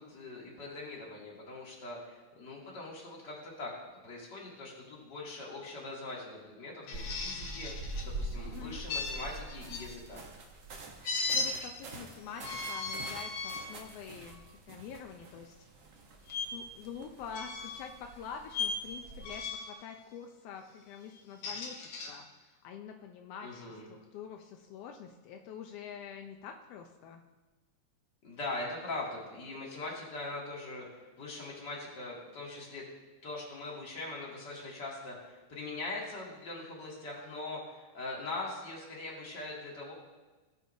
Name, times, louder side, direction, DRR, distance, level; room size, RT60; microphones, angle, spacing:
voice 1, 0.0-3.7 4.0-10.2 23.4-23.9 28.2-30.9 31.2-32.8 33.2-39.9, left 2 dB, 40° left, -4 dB, 2.5 m, -42 dB
sound 1, 6.9-8.1 8.9-9.9 11.0-11.5 12.3-13.7 14.3-14.5 16.3-16.5 17.3-17.9 18.5-18.8 19.2-19.7 21.2-22.1, left 4 dB, 65° left, 2.3 m, -36 dB
sound 2, 6.9-19.4, right 2 dB, 65° right, 1.1 m, -45 dB
voice 2, 8.4-8.8 11.3-14.4 14.7-15.5 16.5-27.2, left 7 dB, 80° left, 4 dB, 1.4 m, -46 dB
18.5 x 6.5 x 2.7 m, 1.2 s
omnidirectional pair, 3.4 m